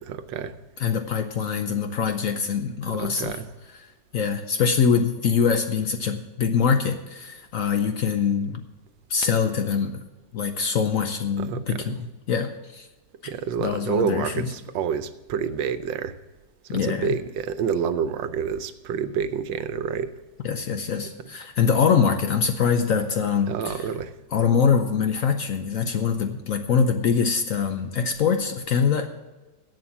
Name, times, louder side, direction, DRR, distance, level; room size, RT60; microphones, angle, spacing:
voice 1, 0.1-0.5 3.0-3.5 11.4-12.0 13.2-16.1 16.7-20.1 23.5-24.1, right 7 dB, 90° right, 1.4 m, -28 dB
voice 2, 0.8-3.4 4.1-8.6 9.1-10.0 10.3-12.9 13.2-13.3 13.6-14.5 16.7-17.1 20.4-23.9 24.3-29.1, left 6 dB, 60° left, 0.9 m, -24 dB
11.0 x 7.8 x 7.1 m
omnidirectional pair, 2.0 m